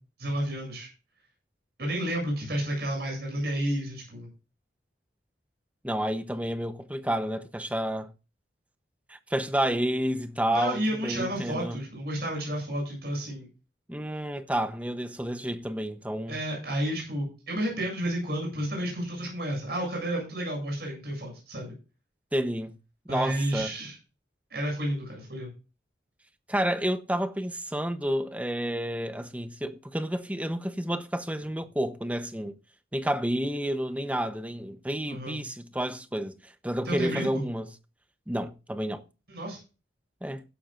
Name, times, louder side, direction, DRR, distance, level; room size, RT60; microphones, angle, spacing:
voice 1, 0.2-0.9 1.8-4.3 10.5-13.5 16.3-21.7 23.1-24.0 24.5-25.5 35.1-35.4 36.8-37.4 39.3-39.6, right 1 dB, 60° right, 8.0 m, -31 dB
voice 2, 5.8-8.1 9.1-11.8 13.9-16.4 22.3-22.7 23.1-23.7 26.5-32.6 32.9-37.7 38.3-39.0 40.2-40.4, equal, 10° right, 0.8 m, -30 dB
15.5 x 12.0 x 2.5 m
head